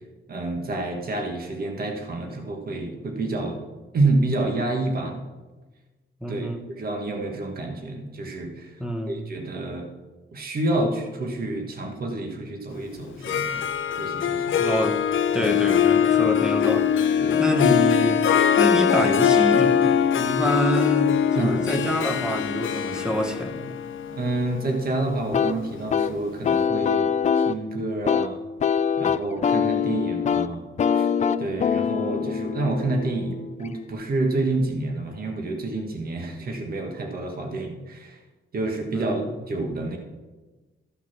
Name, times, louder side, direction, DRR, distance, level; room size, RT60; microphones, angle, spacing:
voice 1, 0.3-3.6 3.9-5.2 6.3-8.8 9.1-9.9 10.3-13.7 14.0-14.6 15.3-15.5 16.2-16.3 17.2-17.4 21.3-21.6 24.1-27.1 27.4-28.4 29.0-30.6 30.9-31.1 31.4-38.2 38.5-40.0, right 2 dB, 50° right, 3 dB, 1.5 m, -28 dB
voice 2, 6.2-6.6 8.8-9.2 14.6-15.0 15.3-18.2 18.6-23.7 38.9-39.4, equal, 5° right, 4 dB, 1.1 m, -26 dB
Harp, 13.1-26.0, left 8 dB, 75° left, 0.7 m, -22 dB
sound 1, 25.3-33.9, left 7 dB, 35° left, 0.4 m, -24 dB
13.5 x 5.9 x 6.0 m, 1.2 s
wide cardioid pair, 145°, 20 cm